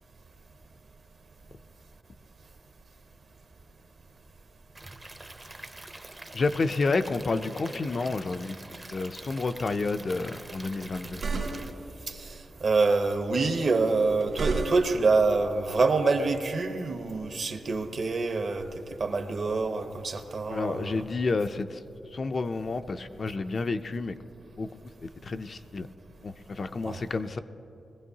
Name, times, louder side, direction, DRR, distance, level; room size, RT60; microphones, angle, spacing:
Stream / Liquid, 4.7-11.7, right 2 dB, 20° right, 0.6 m, -45 dB
voice 1, 6.3-8.6 8.9-11.2 20.5-21.8 22.1-24.1 24.6-25.9 26.2-27.4, left 3 dB, 35° left, 9 dB, 0.3 m, -30 dB
sound 1, 11.0-11.9 13.9-15.1, right 4 dB, 65° right, 2.1 m, -33 dB
voice 2, 12.1-18.7 19.0-21.0 26.8-27.0, right 3 dB, 45° right, 7 dB, 0.8 m, -26 dB
21.0 x 15.5 x 2.7 m, 2.9 s
wide cardioid pair, 170°, 0 cm